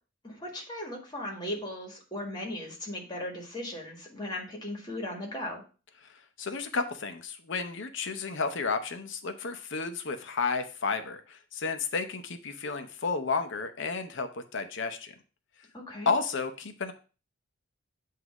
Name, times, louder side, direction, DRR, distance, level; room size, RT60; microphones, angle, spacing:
voice 1, 0.2-5.6 15.7-16.1, left 1 dB, 20° left, 0 dB, 1.6 m, -37 dB
voice 2, 6.4-15.1 16.1-16.9, left 4 dB, 60° left, 8 dB, 0.7 m, -32 dB
8.1 x 2.7 x 4.8 m, 0.35 s
head